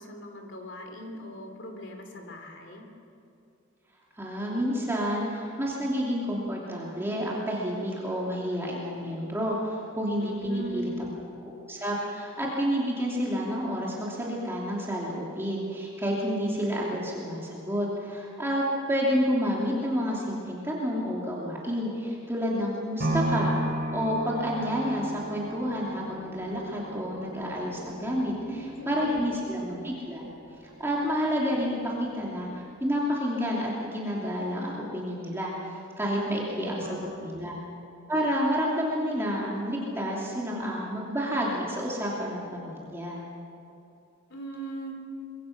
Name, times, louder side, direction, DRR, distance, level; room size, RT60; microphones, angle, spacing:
voice 1, 0.0-2.9 10.2-11.1 28.4-29.3 36.4-37.5 44.3-44.9, right 1 dB, 65° left, 4 dB, 3.2 m, -39 dB
voice 2, 4.2-11.1 11.4-28.3 28.9-30.2 30.8-35.5 36.0-37.6 38.1-43.2, equal, 10° right, -4 dB, 2.9 m, -29 dB
sound 1, 23.0-31.1 31.6-31.7, right 1 dB, 55° right, 4.1 m, -34 dB
24.5 x 22.0 x 5.9 m, 2.6 s
head